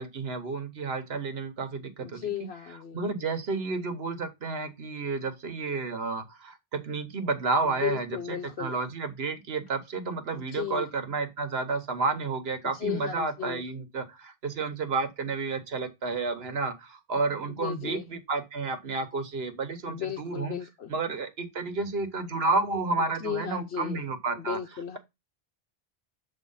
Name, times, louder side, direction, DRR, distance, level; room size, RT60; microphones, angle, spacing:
voice 1, 0.0-2.5 2.9-20.5 20.9-24.6, right 3 dB, 70° right, 1.3 m, -31 dB
voice 2, 2.0-3.0 7.6-8.7 10.3-10.9 12.7-13.6 17.5-18.0 19.9-20.9 23.0-24.0 24.4-25.0, left 9 dB, 80° left, 1.0 m, -35 dB
7.5 x 3.0 x 5.5 m
omnidirectional pair, 1.1 m